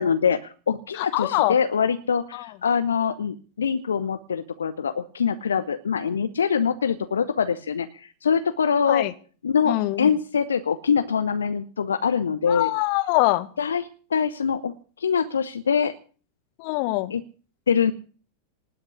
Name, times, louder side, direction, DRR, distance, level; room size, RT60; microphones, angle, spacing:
voice 1, 0.0-9.0 9.4-12.7 13.6-13.8 14.1-14.7 15.0-16.0 17.1-17.2 17.7-17.9, left 6 dB, 70° left, 0.9 m, -24 dB
voice 2, 0.9-1.6 2.3-2.5 8.9-9.1 9.7-10.1 12.5-13.5 16.6-17.1, left 20 dB, 45° left, 1.4 m, -24 dB
19.5 x 6.5 x 9.8 m
figure-of-eight pair, 90°, 0 cm